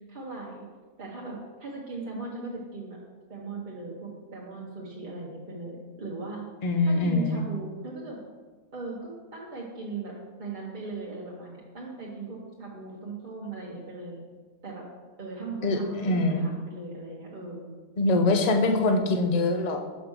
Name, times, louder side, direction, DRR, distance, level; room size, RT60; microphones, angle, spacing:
voice 1, 0.1-0.7 1.0-3.0 3.3-6.4 6.8-8.2 8.7-10.1 10.4-14.2 14.6-14.9 15.2-17.7, right 3 dB, 40° right, -5 dB, 1.0 m, -38 dB
voice 2, 6.6-7.4 15.6-16.4 18.0-19.8, left 2 dB, 45° left, 4 dB, 0.6 m, -24 dB
5.3 x 5.0 x 6.1 m, 1.4 s
omnidirectional pair, 1.5 m